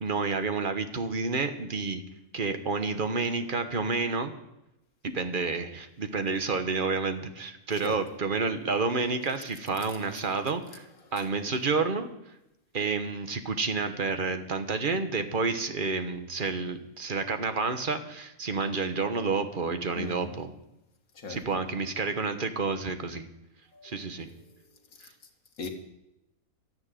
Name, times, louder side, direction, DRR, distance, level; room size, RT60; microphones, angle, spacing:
voice 1, 0.0-2.0 2.3-4.3 5.1-12.1 12.7-20.5 21.3-23.3 23.8-24.3, right 4 dB, 40° right, 1.2 m, -30 dB
voice 2, 20.0-20.3 21.2-21.5 23.7-25.1 25.6-25.7, left 4 dB, 70° left, 2.0 m, -41 dB
12.0 x 10.5 x 9.1 m
omnidirectional pair, 1.5 m